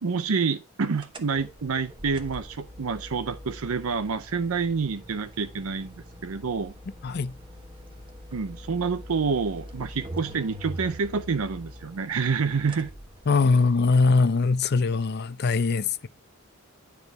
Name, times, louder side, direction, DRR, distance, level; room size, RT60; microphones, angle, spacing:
voice 1, 0.0-6.7 8.3-12.9, right 5 dB, 70° right, 0.6 m, -28 dB
sound 1, 1.0-13.8, equal, 20° right, 1.3 m, -43 dB
voice 2, 7.0-7.3 13.3-16.1, left 4 dB, 45° left, 0.5 m, -22 dB
10.0 x 6.8 x 4.5 m
head